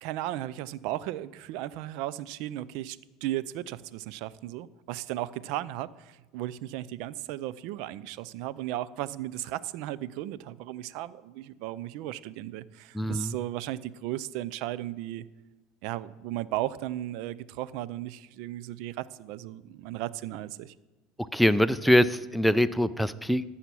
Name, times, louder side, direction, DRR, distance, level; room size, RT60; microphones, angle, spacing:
voice 1, 0.0-15.3 15.8-20.7, right 14 dB, 70° right, 19 dB, 0.4 m, -35 dB
voice 2, 12.9-13.3 21.3-23.4, equal, ahead, 12 dB, 0.4 m, -23 dB
13.5 x 5.7 x 6.1 m, 1.2 s
supercardioid pair, 95°, 0 cm